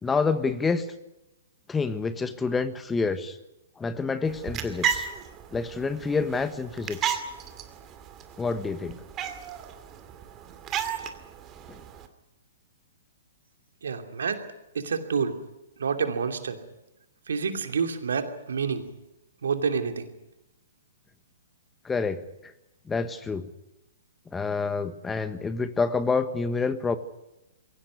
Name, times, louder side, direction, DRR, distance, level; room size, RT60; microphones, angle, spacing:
voice 1, 0.0-0.9 1.7-3.4 3.8-5.1 5.5-7.2 8.4-9.0 11.7-11.8 21.8-22.5 22.9-23.5 24.3-27.0, left 4 dB, 10° left, 11 dB, 1.4 m, -28 dB
sound 1, 4.2-12.1, right 8 dB, 25° right, 2.4 m, -34 dB
voice 2, 13.8-14.4 14.7-15.4 15.8-16.6 17.3-18.8 19.4-20.1, right 5 dB, 75° right, 6 dB, 2.8 m, -28 dB
22.5 x 17.5 x 9.6 m, 0.92 s
hypercardioid pair, 120°, 0 cm